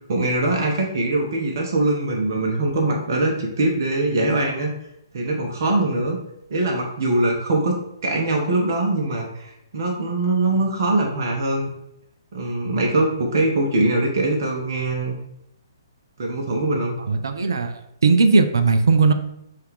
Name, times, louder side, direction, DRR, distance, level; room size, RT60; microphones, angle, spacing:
voice 1, 0.1-4.7 5.1-6.2 6.5-11.7 12.3-15.1 16.2-16.9, right 2 dB, 50° right, 0 dB, 0.9 m, -22 dB
voice 2, 17.1-19.1, right 4 dB, 65° right, 8 dB, 0.5 m, -18 dB
5.4 x 2.5 x 3.5 m, 0.78 s
figure-of-eight pair, 125°, 2 cm